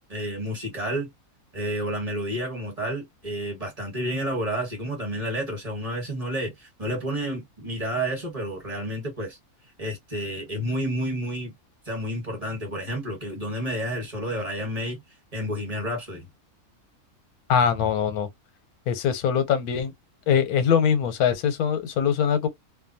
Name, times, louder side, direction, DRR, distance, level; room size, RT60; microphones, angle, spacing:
voice 1, 0.1-1.1 1.5-9.4 9.8-11.5 11.9-15.0 15.3-16.3, equal, 25° right, 1.1 m, -30 dB
voice 2, 17.5-18.3 18.9-19.9 20.3-22.5, left 7 dB, 85° left, 1.1 m, -22 dB
2.5 x 2.2 x 2.6 m
omnidirectional pair, 1.6 m